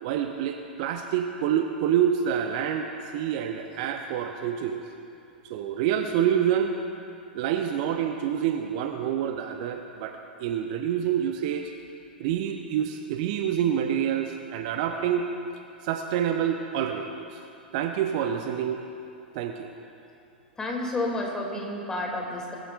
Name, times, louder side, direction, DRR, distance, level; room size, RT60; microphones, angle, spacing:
voice 1, 0.0-4.8 5.4-6.8 7.3-11.7 12.2-15.3 15.8-17.4 17.7-18.8 19.3-19.7, right 9 dB, 45° right, 5 dB, 0.8 m, -27 dB
voice 2, 20.6-22.6, left 2 dB, 10° left, -1 dB, 2.6 m, -30 dB
21.0 x 14.5 x 2.5 m, 2.6 s
figure-of-eight pair, 100°, 5 cm